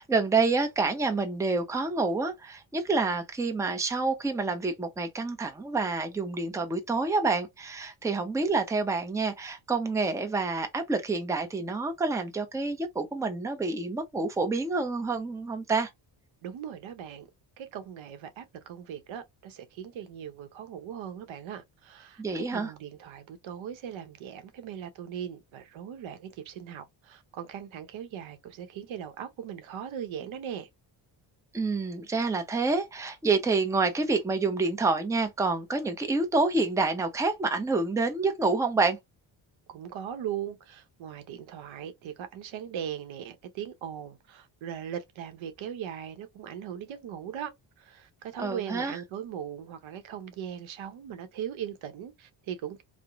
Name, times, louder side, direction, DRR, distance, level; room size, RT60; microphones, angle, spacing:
voice 1, 0.0-15.9 22.2-22.7 31.5-39.0 48.4-48.9, right 3 dB, 5° right, 0.5 m, -28 dB
voice 2, 16.4-17.3 17.6-30.7 39.7-47.5 47.8-52.8, right 9 dB, 75° right, 0.7 m, -39 dB
2.9 x 2.1 x 2.4 m
cardioid pair, 100°, 47 cm